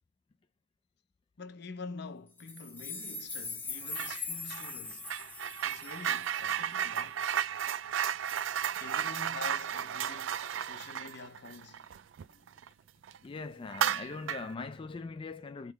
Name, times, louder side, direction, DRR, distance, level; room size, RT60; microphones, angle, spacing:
voice 1, 1.4-5.2 5.6-7.2 8.7-11.9, left 4 dB, 60° left, 0.7 m, -46 dB
sound 1, 2.4-6.8, left 4 dB, 10° left, 1.2 m, -41 dB
sound 2, 3.9-4.2 4.5-12.7 13.0-13.2 13.7-14.5, right 9 dB, 85° right, 0.4 m, -34 dB
voice 2, 13.2-15.7, left 3 dB, 25° left, 0.3 m, -41 dB
3.7 x 3.2 x 4.6 m
head